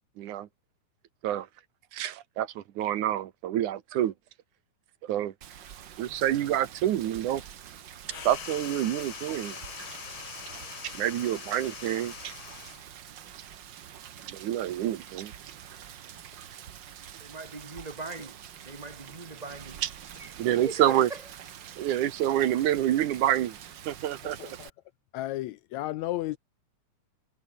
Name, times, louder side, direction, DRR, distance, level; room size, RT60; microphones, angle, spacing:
voice 1, 0.2-0.5 1.2-1.5 1.9-4.1 5.0-5.3 6.0-7.4 8.2-9.6 10.8-12.3 14.3-15.3 19.8-19.9 20.4-21.1 21.8-23.6 23.9-24.4, right 12 dB, 75° right, 2.7 m, -27 dB
Rain, 5.4-24.7, right 9 dB, 60° right, 1.2 m, -46 dB
sound 1, 8.1-12.9, left 8 dB, 45° left, 2.1 m, -42 dB
voice 2, 17.2-19.8 20.1-21.2, right 3 dB, 15° right, 1.7 m, -41 dB
voice 3, 24.4-24.7 25.1-26.4, left 16 dB, 80° left, 1.7 m, -33 dB
omnidirectional pair, 3.6 m